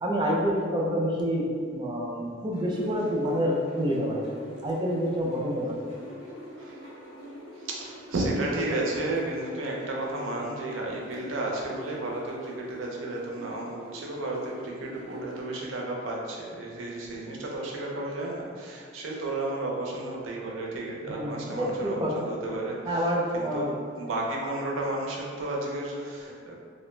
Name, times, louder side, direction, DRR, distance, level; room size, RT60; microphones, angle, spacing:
voice 1, 0.0-4.2 4.6-5.8 21.1-22.2 22.8-23.7 26.2-26.3, equal, 25° right, -2 dB, 0.4 m, -28 dB
sound 1, 2.5-15.8, equal, 65° left, 1.2 m, -46 dB
voice 2, 6.6-6.9 7.6-26.6, right 2 dB, 80° right, -2 dB, 0.5 m, -33 dB
2.4 x 2.1 x 3.0 m, 2.1 s
head